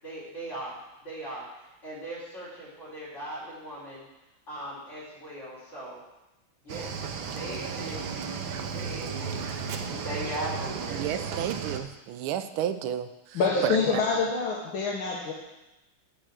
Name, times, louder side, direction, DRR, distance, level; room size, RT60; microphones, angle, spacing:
voice 1, 0.0-0.8 1.0-4.0 4.5-6.0 6.6-7.1 7.3-8.2 8.7-11.0 13.4-14.0, right 1 dB, 35° left, -7 dB, 4.2 m, -39 dB
Cricket / Waves surf, 6.7-11.8, right 6 dB, 75° right, 1.5 m, -34 dB
voice 2, 10.9-14.0, right 10 dB, 90° right, 10 dB, 1.5 m, -32 dB
voice 3, 13.3-15.3, left 4 dB, 75° left, -3 dB, 1.9 m, -26 dB
9.0 x 4.9 x 7.4 m, 0.96 s
omnidirectional pair, 2.3 m